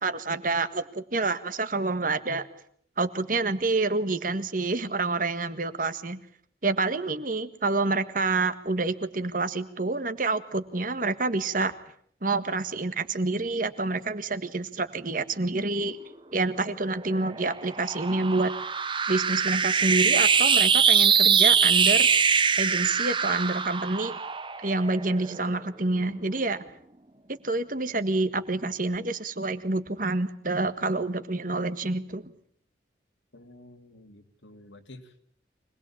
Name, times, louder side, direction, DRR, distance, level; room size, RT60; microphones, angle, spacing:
voice 1, 0.0-2.5 3.0-6.2 6.6-11.7 12.2-16.0 16.3-18.5 19.1-22.1 22.6-24.1 24.6-26.6 27.3-32.3, right 3 dB, 45° right, 10 dB, 1.7 m, -28 dB
sound 1, 16.9-25.5, right 6 dB, 25° right, 1.1 m, -23 dB
voice 2, 33.3-35.2, left 1 dB, 80° left, 7 dB, 2.6 m, -50 dB
25.0 x 20.0 x 8.6 m, 0.63 s
head